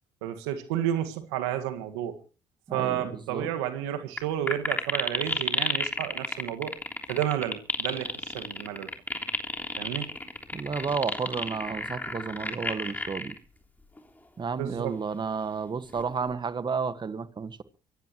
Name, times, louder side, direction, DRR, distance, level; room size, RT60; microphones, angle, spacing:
voice 1, 0.2-2.2 2.7-6.8 7.1-8.9 9.8-10.1 14.6-14.9, right 11 dB, 90° right, 1.8 m, -31 dB
voice 2, 2.7-3.5 10.5-13.4 14.4-17.6, right 5 dB, 35° right, 1.6 m, -32 dB
sound 1, 4.2-4.3 4.5-13.4 14.0-14.1 15.9-16.3, left 2 dB, 15° left, 3.3 m, -30 dB
24.0 x 15.5 x 3.1 m
supercardioid pair, 70°, 13 cm